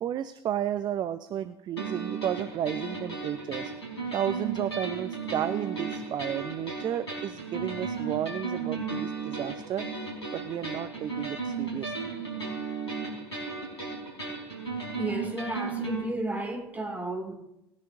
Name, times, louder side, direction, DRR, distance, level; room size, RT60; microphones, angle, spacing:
voice 1, 0.0-3.7 4.1-9.9 10.3-11.9, right 10 dB, 30° right, 0.5 m, -32 dB
sound 1, 1.8-16.0, right 4 dB, 80° left, 4.8 m, -35 dB
voice 2, 15.0-17.3, right 2 dB, 10° right, 2.4 m, -33 dB
20.0 x 10.5 x 2.6 m
figure-of-eight pair, 70°, 14 cm